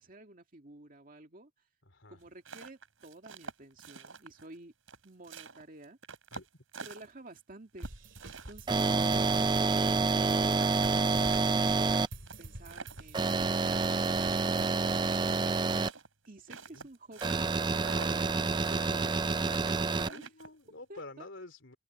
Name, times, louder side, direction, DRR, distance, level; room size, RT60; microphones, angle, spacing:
voice 1, 0.0-1.5 2.1-4.7 5.0-6.0 6.8-7.9 12.4-15.5 16.3-20.3 20.9-21.3, right 2 dB, 45° right, 2.3 m, -51 dB
voice 2, 1.8-2.2 6.3-6.5 16.7-16.9 20.0-21.8, left 2 dB, 70° left, 3.8 m, -48 dB
sound 1, 2.2-4.6 4.9-7.4 7.8-10.0 10.3-10.4 10.6-13.9 14.2-17.5 17.8-18.3 18.6-20.7, right 4 dB, 90° right, 5.1 m, -47 dB
sound 2, 7.8-14.7, right 2 dB, 65° right, 2.8 m, -48 dB
sound 3, 8.7-12.1 13.1-15.9 17.2-20.1, right 4 dB, 20° right, 0.4 m, -28 dB
open air
head